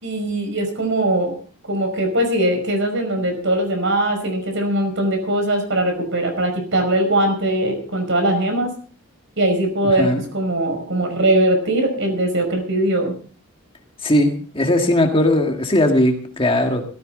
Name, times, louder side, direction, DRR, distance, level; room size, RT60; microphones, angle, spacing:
voice 1, 0.0-1.3 1.7-8.7 9.4-10.1 10.3-13.1, right 1 dB, 55° right, 5 dB, 5.3 m, -20 dB
voice 2, 9.8-10.2 14.0-16.8, left 1 dB, 25° left, 4 dB, 1.7 m, -18 dB
17.0 x 14.5 x 3.8 m, 0.41 s
head